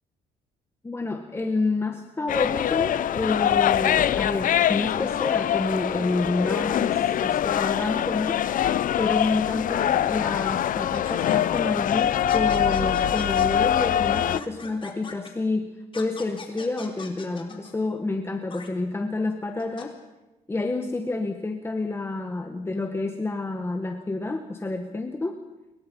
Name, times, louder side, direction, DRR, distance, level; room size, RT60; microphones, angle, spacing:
voice 1, 0.8-8.4 8.7-19.9 20.5-25.4, left 2 dB, 15° left, 5 dB, 1.8 m, -29 dB
sound 1, 2.3-14.4, left 10 dB, 55° left, 0.8 m, -24 dB
sound 2, 10.9-11.6 12.3-13.5 14.1-15.3 15.9-17.7 18.5-18.7 19.6-19.8, left 5 dB, 30° left, 4.1 m, -41 dB
29.0 x 23.0 x 5.6 m, 1.0 s
cardioid pair, 110°, 17 cm